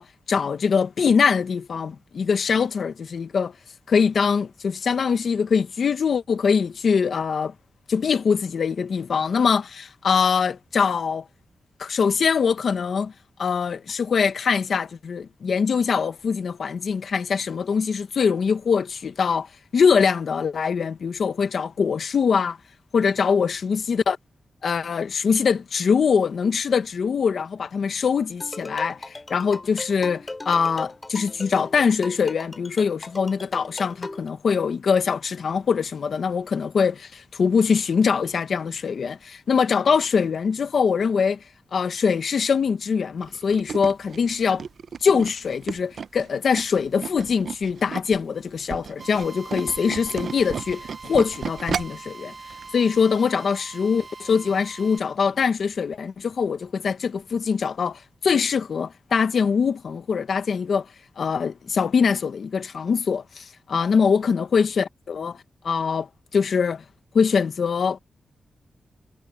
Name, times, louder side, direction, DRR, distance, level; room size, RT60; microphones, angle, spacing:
voice 1, 0.0-3.5 3.9-7.5 7.9-11.2 11.8-13.1 13.4-19.5 19.7-22.6 22.9-24.2 24.6-41.4 41.7-44.6 45.0-52.3 52.7-60.9 61.2-65.4 65.6-66.1 66.3-66.8 67.1-68.0, left 6 dB, 65° left, 1.4 m, -23 dB
sound 1, 28.4-34.3, left 2 dB, 25° left, 2.7 m, -37 dB
Tools, 43.2-48.2 48.6-52.1 52.5-52.7 53.0-53.1, right 6 dB, 65° right, 0.7 m, -33 dB
Drill, 49.0-55.0, right 4 dB, 40° right, 1.9 m, -42 dB
wide cardioid pair, 115°, 0 cm